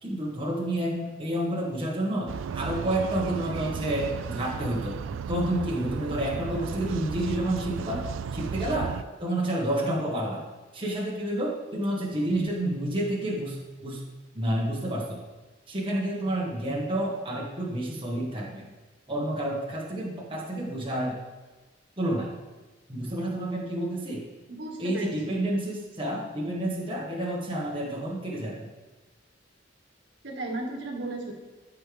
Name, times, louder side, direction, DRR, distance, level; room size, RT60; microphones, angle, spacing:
voice 1, 0.0-5.0 5.3-10.5 10.7-14.0 14.3-15.2 15.7-18.7 19.1-21.2 22.0-22.3 22.9-24.3 24.8-28.7, right 1 dB, 25° right, -4 dB, 1.6 m, -29 dB
sound 1, 2.3-9.0, right 6 dB, 90° right, 0.3 m, -34 dB
voice 2, 24.5-25.4 30.2-31.3, right 2 dB, 65° right, -1 dB, 1.9 m, -35 dB
14.0 x 5.5 x 3.5 m, 1.2 s
head